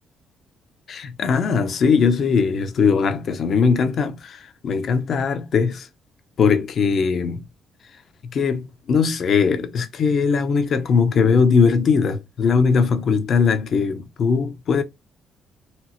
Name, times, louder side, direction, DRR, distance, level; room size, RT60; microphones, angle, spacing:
voice 1, 0.9-5.9 6.4-7.5 8.3-14.8, left 5 dB, 60° left, 0.6 m, -20 dB
4.3 x 2.0 x 2.6 m
cardioid pair, 85°, 0 cm